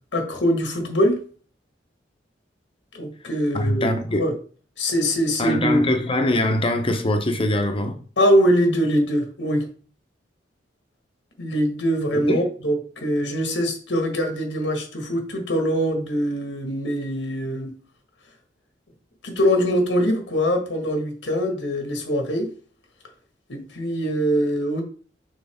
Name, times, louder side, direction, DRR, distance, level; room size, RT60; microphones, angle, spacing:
voice 1, 0.1-1.2 2.9-4.3 4.8-5.8 8.2-9.6 11.4-17.7 19.2-22.5 23.5-24.8, equal, 90° left, 1.8 m, -23 dB
voice 2, 3.5-4.2 5.4-8.0 12.1-12.4, left 1 dB, 30° left, 0.9 m, -23 dB
6.2 x 4.6 x 3.6 m
head